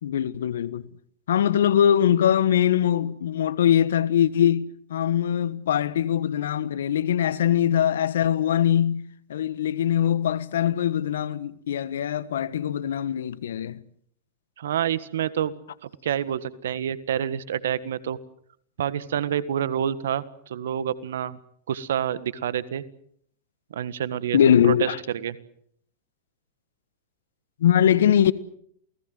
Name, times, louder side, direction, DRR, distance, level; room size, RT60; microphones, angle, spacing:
voice 1, 0.0-0.8 1.3-9.0 9.3-13.8 24.3-25.0 27.6-28.3, left 10 dB, 75° left, 1.3 m, -22 dB
voice 2, 14.6-15.5 15.8-18.2 18.8-21.4 21.7-22.8 23.7-24.4 24.6-25.4, right 9 dB, 75° right, 1.6 m, -28 dB
28.5 x 19.0 x 7.8 m
hypercardioid pair, 105°, 0 cm